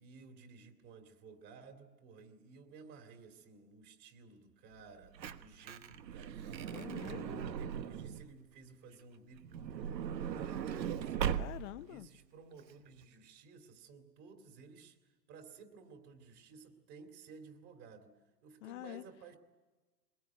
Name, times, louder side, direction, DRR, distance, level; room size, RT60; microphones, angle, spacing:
voice 1, 0.0-6.9 7.5-11.3 11.8-15.0 15.3-18.2 18.4-19.4, right 4 dB, 35° right, 6 dB, 2.5 m, -55 dB
Truck / Door, 4.8-8.3 9.4-11.9 12.6-12.7 12.9-13.0, right 9 dB, 85° right, 1.3 m, -39 dB
voice 2, 6.7-7.5 11.4-12.1 18.6-19.0, left 16 dB, 45° left, 15 dB, 0.8 m, -46 dB
21.5 x 20.0 x 9.4 m, 1.2 s
hypercardioid pair, 140°, 49 cm